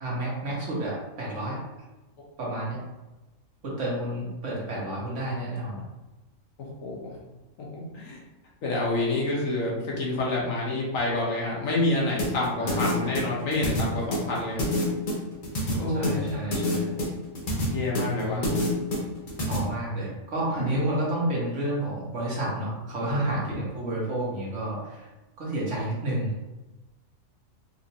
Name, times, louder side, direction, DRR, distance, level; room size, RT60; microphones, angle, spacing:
voice 1, 0.0-1.6 2.4-2.8 3.6-5.9 12.6-13.2 15.9-17.1 18.2-18.7 19.5-25.1 25.4-26.3, right 1 dB, 65° right, -5 dB, 1.4 m, -30 dB
voice 2, 6.6-7.2 7.7-8.2 8.6-14.6 15.7-16.4 17.7-18.4 20.6-20.7 23.1-23.7, left 2 dB, 80° left, -4 dB, 1.4 m, -28 dB
sound 1, 12.2-19.6, left 1 dB, 45° left, 0.8 m, -28 dB
4.3 x 2.5 x 2.8 m, 1.1 s
omnidirectional pair, 1.3 m